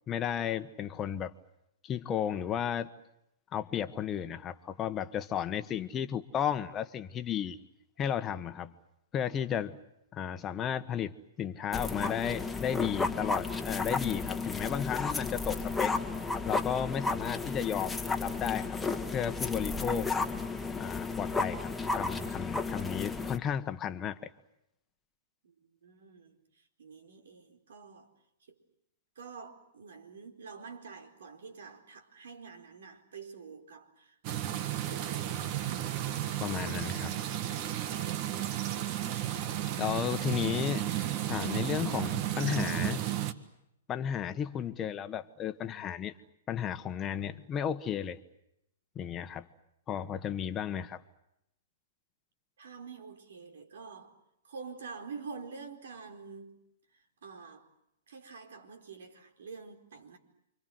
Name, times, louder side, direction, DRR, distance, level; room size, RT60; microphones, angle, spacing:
voice 1, 0.1-1.3 1.8-2.9 3.5-7.6 8.0-8.7 9.1-9.8 10.1-15.9 16.4-18.8 19.1-20.1 20.8-24.3 36.4-37.1 39.7-40.8 41.3-43.0 43.9-46.1 46.5-48.2 48.9-49.5 49.9-51.0, left 9 dB, 25° left, 1.4 m, -33 dB
sound 1, 11.7-23.4, left 3 dB, 5° left, 1.8 m, -33 dB
voice 2, 25.4-26.4 26.8-28.1 29.2-34.2 34.9-36.0 36.5-37.1 52.6-54.1 54.4-56.6 56.9-57.6 58.1-60.2, right 5 dB, 70° right, 4.5 m, -47 dB
sound 2, 34.2-43.3, right 12 dB, 45° right, 1.7 m, -33 dB
29.5 x 25.5 x 7.9 m
hypercardioid pair, 125°, 0 cm